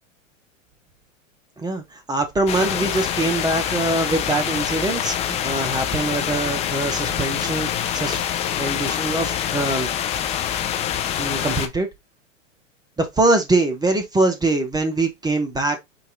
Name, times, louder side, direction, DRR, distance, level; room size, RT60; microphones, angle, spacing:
voice 1, 1.6-8.2 8.6-9.9 11.2-11.9 13.0-15.8, right 2 dB, 10° right, 0.8 m, -23 dB
sound 1, 2.5-11.7, left 10 dB, 20° left, 0.4 m, -25 dB
4.8 x 2.7 x 3.7 m
hypercardioid pair, 110°, 39 cm